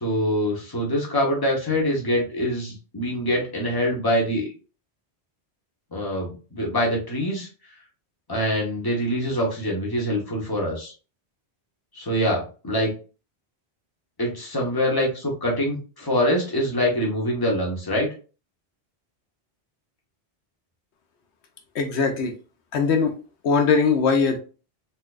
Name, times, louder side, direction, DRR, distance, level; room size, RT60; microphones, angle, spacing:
voice 1, 0.0-4.5 5.9-7.5 8.3-10.9 11.9-12.9 14.2-18.1, equal, 20° left, -2 dB, 1.1 m, -24 dB
voice 2, 21.7-22.3 22.7-23.2 23.4-24.4, left 5 dB, 80° left, 4 dB, 0.9 m, -20 dB
4.1 x 2.6 x 2.4 m, 0.36 s
omnidirectional pair, 1.1 m